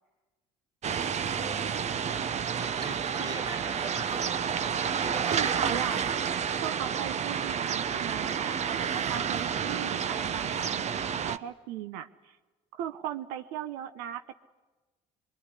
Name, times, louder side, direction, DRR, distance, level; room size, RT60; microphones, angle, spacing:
sound 1, 0.8-11.4, right 7 dB, 45° right, 1.0 m, -30 dB
voice 1, 1.4-2.0 2.6-4.6 5.0-6.2, right 2 dB, 25° right, 5 dB, 2.6 m, -41 dB
voice 2, 5.2-6.0 6.6-12.4 12.7-14.3, right 11 dB, 85° right, 10 dB, 0.9 m, -38 dB
23.5 x 23.0 x 9.8 m, 1.2 s
supercardioid pair, 75°, 15 cm